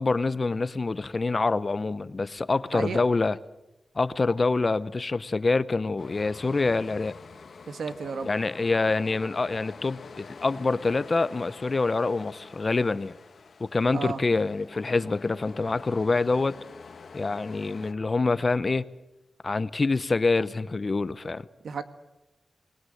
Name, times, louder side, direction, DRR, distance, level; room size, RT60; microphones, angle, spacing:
voice 1, 0.0-3.4 3.9-7.2 8.3-13.2 13.6-16.6 17.1-18.8 19.4-21.5, left 3 dB, 35° left, 0.8 m, -26 dB
sound 1, 6.0-17.9, left 4 dB, 65° left, 1.6 m, -46 dB
voice 2, 7.7-8.3 13.9-14.2 21.6-21.8, right 5 dB, 85° right, 1.6 m, -32 dB
28.0 x 21.0 x 7.9 m
wide cardioid pair, 105°, 0 cm